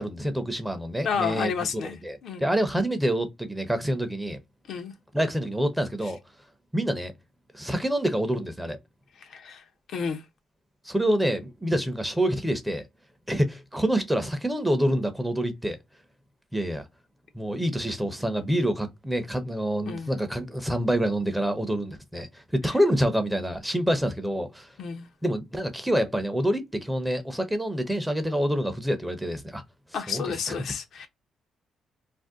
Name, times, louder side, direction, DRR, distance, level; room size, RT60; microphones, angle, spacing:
voice 1, 0.0-4.4 5.1-6.2 6.7-7.1 7.5-8.8 10.8-12.8 13.3-15.8 16.5-16.9 17.3-24.7 25.2-29.6 30.1-30.2, equal, 5° right, 0.6 m, -27 dB
voice 2, 1.0-2.4 4.7-4.9 9.2-9.6 9.9-10.2 19.8-20.1 24.8-25.1 29.9-31.1, left 6 dB, 65° left, 0.6 m, -31 dB
2.5 x 2.1 x 3.5 m
cardioid pair, 90°, 0 cm